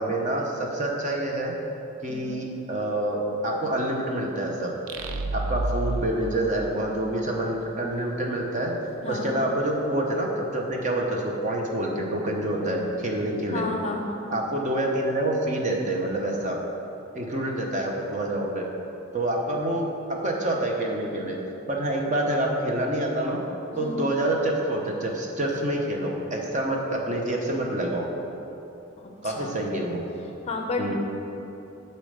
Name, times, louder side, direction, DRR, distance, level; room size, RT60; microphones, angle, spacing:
voice 1, 0.0-1.5 2.0-4.7 5.3-8.7 9.1-13.7 14.3-16.6 17.1-18.7 19.1-21.4 21.7-23.4 23.8-28.1 29.2-30.0 30.8-30.9, right 1 dB, 35° right, 0 dB, 0.8 m, -27 dB
sound 1, 4.9-7.5, right 2 dB, 80° right, 0.5 m, -31 dB
voice 2, 9.0-9.3 13.5-14.3 23.7-24.0 29.0-29.6 30.5-30.9, left 2 dB, 30° left, 2 dB, 0.5 m, -32 dB
6.8 x 4.4 x 6.6 m, 3.0 s
head